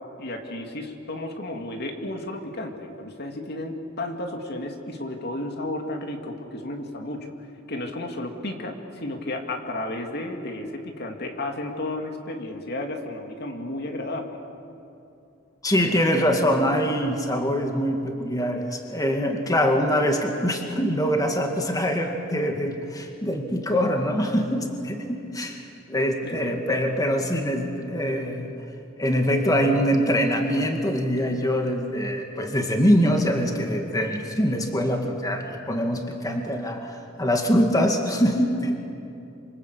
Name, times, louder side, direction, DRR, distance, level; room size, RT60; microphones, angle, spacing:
voice 1, 0.2-7.3 7.7-14.4 26.2-26.8, left 1 dB, 55° left, 3 dB, 2.5 m, -33 dB
voice 2, 15.6-28.5 29.0-38.8, equal, 20° left, 3 dB, 2.1 m, -24 dB
26.5 x 26.5 x 8.3 m, 2.7 s
head